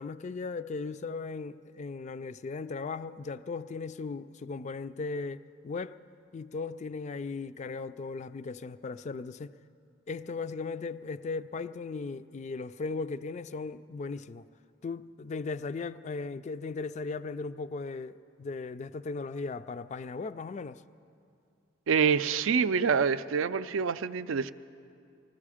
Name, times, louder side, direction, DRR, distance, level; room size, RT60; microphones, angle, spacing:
voice 1, 0.0-6.0 6.3-9.5 10.1-14.4 14.8-20.8, left 4 dB, 35° left, 0.3 m, -37 dB
voice 2, 21.9-24.5, right 6 dB, 80° right, 0.4 m, -26 dB
20.0 x 14.5 x 4.9 m
head